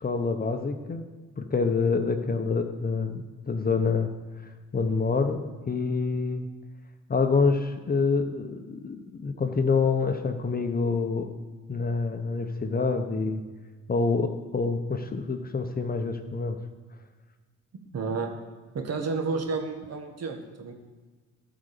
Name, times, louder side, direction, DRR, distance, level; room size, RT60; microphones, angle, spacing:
voice 1, 0.0-1.1 1.4-4.1 4.7-6.5 7.1-11.3 11.7-13.4 13.9-16.6, left 4 dB, 30° left, 7 dB, 0.9 m, -27 dB
voice 2, 17.9-18.3 18.7-20.7, right 4 dB, 55° right, 4 dB, 1.7 m, -31 dB
13.0 x 5.1 x 6.8 m, 1.3 s
cardioid pair, 90°, 30 cm